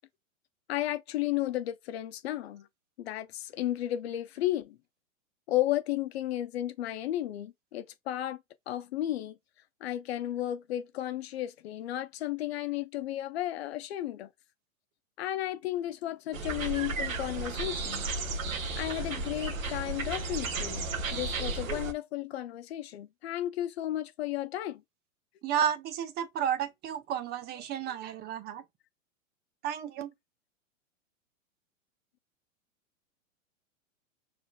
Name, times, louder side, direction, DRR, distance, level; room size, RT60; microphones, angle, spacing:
voice 1, 0.7-2.7 3.0-4.8 5.5-8.4 8.7-9.3 9.8-14.3 15.2-18.1 18.8-24.8, left 13 dB, 50° left, 0.6 m, -33 dB
sound 1, 16.3-21.9, right 3 dB, 75° right, 1.2 m, -34 dB
voice 2, 25.4-28.6 29.6-30.1, right 9 dB, 25° right, 0.7 m, -32 dB
5.1 x 3.2 x 2.2 m
figure-of-eight pair, 105°, 40 cm